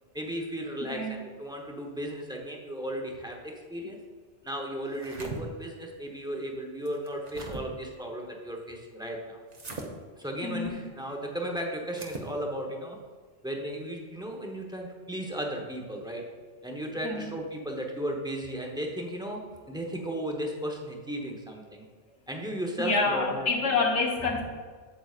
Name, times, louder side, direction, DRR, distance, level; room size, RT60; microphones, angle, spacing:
voice 1, 0.1-4.0 4.4-9.4 10.2-13.0 13.4-16.2 16.6-21.8 22.3-23.5, right 1 dB, 5° right, 0 dB, 0.8 m, -35 dB
voice 2, 0.8-1.2 10.4-10.8 17.0-17.3 22.8-24.4, left 3 dB, 75° left, 0 dB, 1.5 m, -28 dB
sound 1, 4.8-5.4 6.9-7.6 9.5-9.9 11.9-12.3, right 3 dB, 40° right, 0.9 m, -40 dB
8.7 x 7.9 x 2.5 m, 1.5 s
omnidirectional pair, 1.2 m